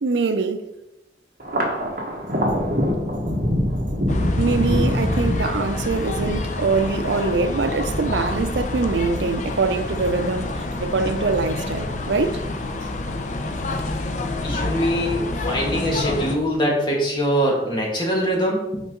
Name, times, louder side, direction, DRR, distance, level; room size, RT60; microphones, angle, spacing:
voice 1, 0.0-0.7 4.4-12.4, right 4 dB, 85° right, 0.6 m, -23 dB
Thunder, 1.4-14.1 14.5-15.3 15.6-16.5, equal, 55° right, 1.6 m, -27 dB
sound 1, 4.1-16.4, left 2 dB, 45° left, 0.7 m, -28 dB
voice 2, 14.4-18.8, equal, 25° left, 2.0 m, -23 dB
8.1 x 5.2 x 3.8 m
head